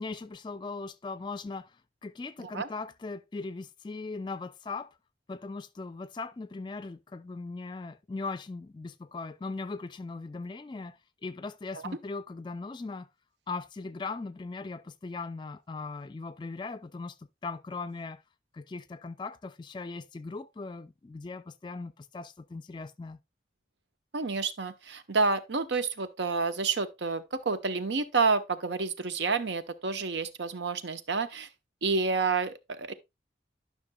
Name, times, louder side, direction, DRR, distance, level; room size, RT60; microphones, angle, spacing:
voice 1, 0.0-1.7 2.0-4.9 5.3-13.1 13.5-18.2 18.5-23.2, left 3 dB, 25° left, 0.3 m, -39 dB
voice 2, 24.1-31.5 31.8-32.9, right 4 dB, 90° right, 0.8 m, -29 dB
12.5 x 5.8 x 2.2 m
head